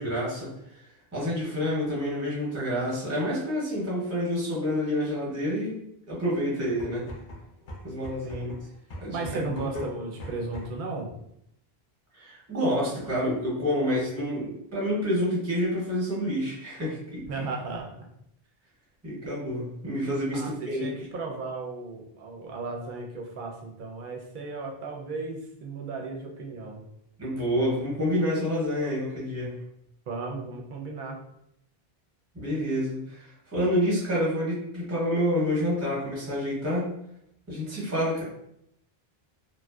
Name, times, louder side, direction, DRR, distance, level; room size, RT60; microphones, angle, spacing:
voice 1, 0.0-5.8 6.1-7.0 7.8-8.5 9.0-9.6 12.1-17.2 19.0-20.9 27.2-29.6 32.3-36.9 37.5-38.2, equal, 15° right, -6 dB, 0.7 m, -28 dB
sound 1, 6.8-10.9, equal, 55° left, 0.5 m, -42 dB
voice 2, 9.1-11.1 17.3-18.1 20.3-26.8 30.1-31.2, right 3 dB, 60° right, 0 dB, 0.6 m, -35 dB
2.6 x 2.1 x 2.2 m, 0.77 s
omnidirectional pair, 1.0 m